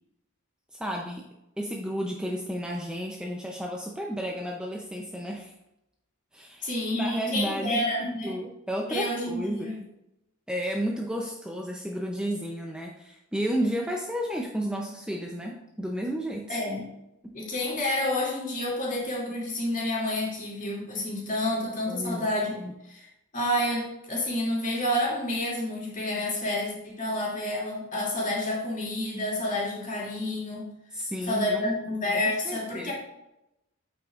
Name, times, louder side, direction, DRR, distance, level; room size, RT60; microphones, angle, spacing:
voice 1, 0.7-1.3 1.6-5.5 6.3-9.9 10.5-16.6 17.2-17.4 21.9-22.7 30.9-31.8 32.1-32.9, equal, 5° right, 0 dB, 0.6 m, -32 dB
voice 2, 6.6-8.3 8.9-9.8 16.5-16.9 17.3-22.6 22.8-23.1 23.3-30.7 31.2-32.9, left 1 dB, 35° left, -4 dB, 2.7 m, -29 dB
8.6 x 7.7 x 2.5 m, 0.88 s
head